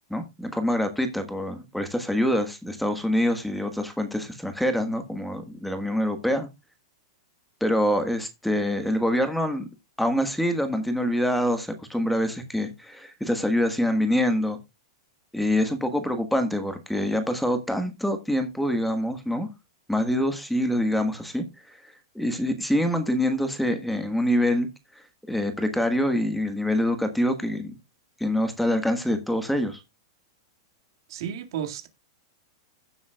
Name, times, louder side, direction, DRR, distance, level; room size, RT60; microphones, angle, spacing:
voice 1, 0.1-6.5 7.6-9.7 10.0-14.6 15.3-19.5 19.9-21.8 22.1-24.7 25.3-27.7 28.2-29.8, equal, ahead, 1.5 m, -25 dB
voice 2, 31.1-31.9, right 9 dB, 65° right, 1.9 m, -32 dB
16.0 x 7.2 x 2.3 m
supercardioid pair, 145°, 3 cm